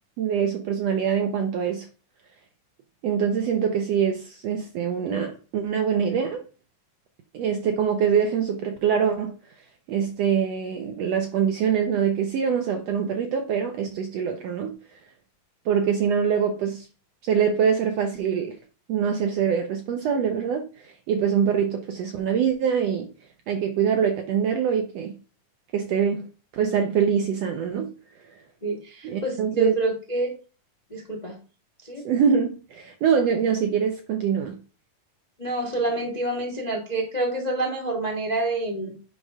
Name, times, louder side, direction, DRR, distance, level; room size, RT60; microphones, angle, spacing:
voice 1, 0.2-1.9 3.0-6.4 7.3-9.4 9.9-14.8 15.6-16.9 17.2-18.6 18.9-23.1 23.5-25.1 25.7-27.9 29.0-29.7 32.0-34.6, right 7 dB, 75° right, 1.5 m, -24 dB
voice 2, 28.6-30.3 30.9-31.4 31.8-32.0 35.4-39.0, right 2 dB, 40° left, 0.5 m, -27 dB
8.4 x 5.3 x 3.6 m
omnidirectional pair, 3.8 m